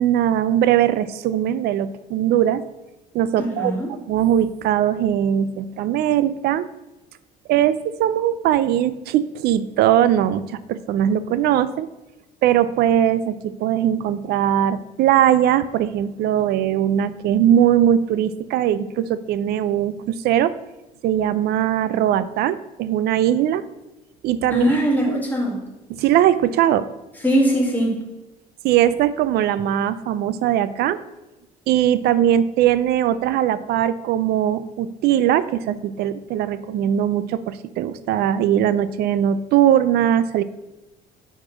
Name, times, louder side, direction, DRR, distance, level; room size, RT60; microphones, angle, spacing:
voice 1, 0.0-2.6 3.1-3.7 4.1-6.7 7.5-11.9 12.4-20.5 21.0-23.6 24.2-24.7 25.1-25.2 25.9-26.9 28.6-31.0 31.7-40.4, right 11 dB, 70° right, 15 dB, 0.4 m, -20 dB
voice 2, 3.4-3.9 24.5-25.6 27.2-28.0, right 1 dB, 10° left, -3 dB, 1.9 m, -21 dB
4.9 x 4.3 x 5.7 m, 1.0 s
cardioid pair, 110°, 17 cm